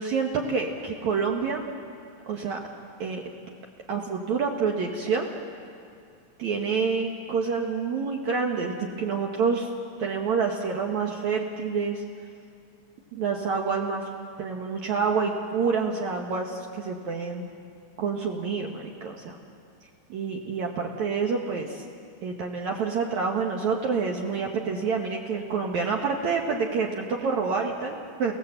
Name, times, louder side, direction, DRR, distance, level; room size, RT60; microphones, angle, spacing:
voice 1, 0.0-1.6 2.3-2.6 3.0-3.2 3.9-5.3 6.4-9.7 10.0-12.0 13.1-14.0 14.4-17.5 18.0-19.4 20.1-21.8 22.2-28.4, right 5 dB, 80° right, 1 dB, 1.6 m, -27 dB
28.5 x 17.0 x 7.9 m, 2.4 s
omnidirectional pair, 5.1 m